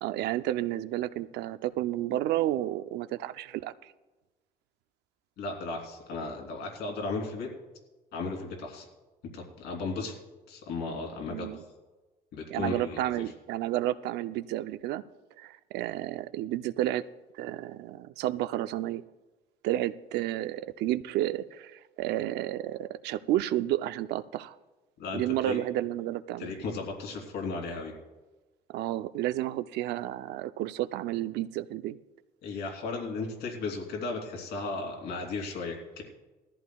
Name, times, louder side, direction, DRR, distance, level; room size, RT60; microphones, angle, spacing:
voice 1, 0.0-3.9 11.3-11.6 12.5-15.0 15.4-17.0 17.3-19.0 19.6-24.6 25.1-26.5 28.7-32.0, right 14 dB, 85° right, 0.6 m, -31 dB
voice 2, 5.4-7.5 8.1-8.9 9.3-10.1 10.5-11.6 12.3-13.0 25.0-25.6 26.4-27.9 32.4-36.0, left 3 dB, 75° left, 3.2 m, -35 dB
19.0 x 14.0 x 2.3 m
cardioid pair, 110°, 17 cm